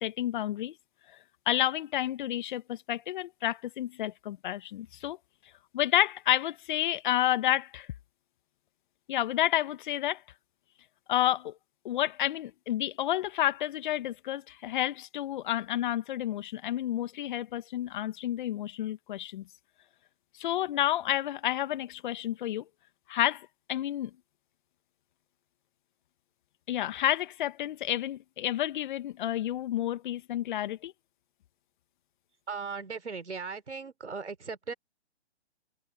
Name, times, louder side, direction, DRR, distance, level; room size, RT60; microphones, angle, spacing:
voice 1, 0.0-0.7 1.5-5.2 5.7-7.9 9.1-10.2 11.1-11.5 11.8-19.4 20.4-22.6 23.1-24.1 26.7-30.9, left 13 dB, 45° left, 1.6 m, -30 dB
voice 2, 32.5-34.7, right 5 dB, 80° right, 4.1 m, -38 dB
figure-of-eight pair, 130°, 34 cm